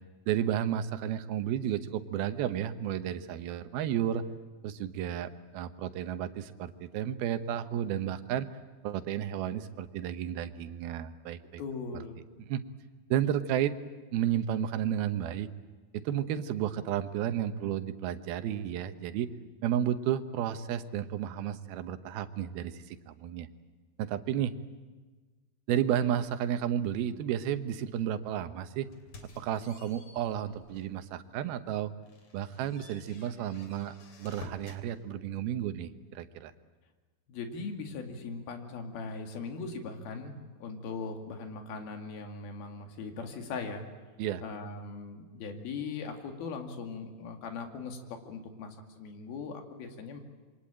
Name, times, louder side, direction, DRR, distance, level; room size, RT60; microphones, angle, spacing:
voice 1, 0.3-4.2 4.6-8.5 8.8-11.6 12.5-12.6 13.1-13.7 14.1-15.5 15.9-19.3 19.6-23.5 24.0-24.5 25.7-28.9 29.4-31.9 32.3-36.5 44.2-44.4, right 10 dB, 80° right, 10 dB, 2.9 m, -32 dB
voice 2, 11.6-12.2 37.3-43.8 44.4-48.0 48.2-50.2, left 4 dB, 75° left, 5 dB, 4.2 m, -39 dB
sound 1, 28.9-31.0 31.5-31.6 32.0-34.9, left 2 dB, 50° left, 3.7 m, -51 dB
27.0 x 23.5 x 8.9 m, 1.3 s
omnidirectional pair, 4.4 m